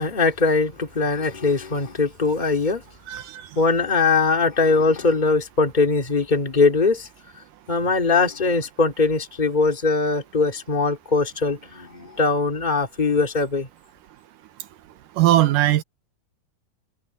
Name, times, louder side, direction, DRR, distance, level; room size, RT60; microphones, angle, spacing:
voice 1, 0.0-2.8 3.6-7.1 7.7-13.7, left 4 dB, 15° left, 1.9 m, -21 dB
voice 2, 3.1-3.4 15.2-15.8, right 14 dB, 75° right, 2.3 m, -19 dB
omnidirectional pair, 4.3 m